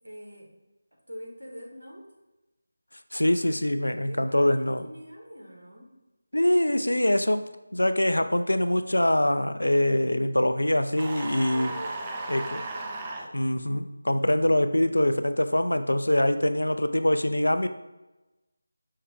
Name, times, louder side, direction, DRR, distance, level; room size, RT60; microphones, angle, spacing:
voice 1, 0.0-0.5 1.1-2.1 4.0-5.9 11.5-13.5, equal, 85° right, 0 dB, 1.3 m, -45 dB
voice 2, 3.1-4.9 6.3-11.7 12.3-12.6 13.3-17.7, left 1 dB, 80° left, 10 dB, 0.3 m, -24 dB
sound 1, 11.0-13.3, right 2 dB, 20° right, 0.4 m, -35 dB
5.4 x 2.2 x 3.7 m, 1.0 s
figure-of-eight pair, 165°, 0 cm